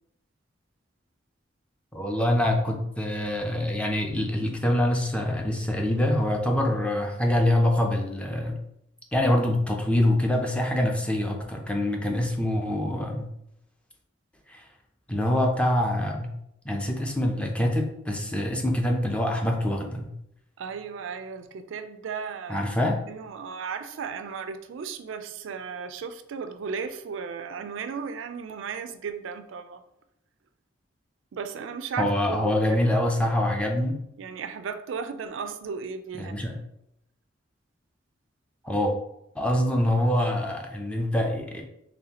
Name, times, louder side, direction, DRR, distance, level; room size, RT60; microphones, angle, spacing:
voice 1, 1.9-8.6 9.1-13.3 14.5-14.6 15.1-16.3 16.7-20.1 22.5-23.0 32.0-34.0 36.2-36.5 38.6-38.9 39.4-41.6, left 1 dB, 5° left, 2 dB, 0.5 m, -25 dB
voice 2, 20.6-29.8 31.3-33.5 34.2-36.5, right 6 dB, 85° right, 10 dB, 0.4 m, -36 dB
4.0 x 3.3 x 2.8 m, 0.81 s
head